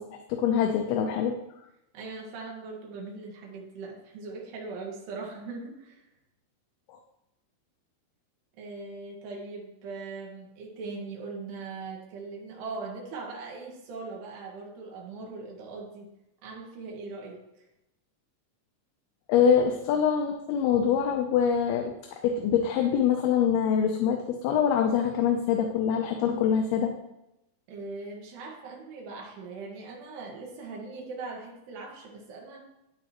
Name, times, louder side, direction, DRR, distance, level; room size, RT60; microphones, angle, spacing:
voice 1, 0.0-1.4 6.9-7.0 19.3-21.9 22.2-26.9, left 7 dB, 75° left, 3 dB, 2.5 m, -24 dB
voice 2, 1.9-6.0 8.6-16.1 16.4-17.6 27.7-32.6, right 3 dB, 75° right, -1 dB, 3.8 m, -40 dB
12.5 x 9.4 x 3.1 m, 0.87 s
omnidirectional pair, 4.8 m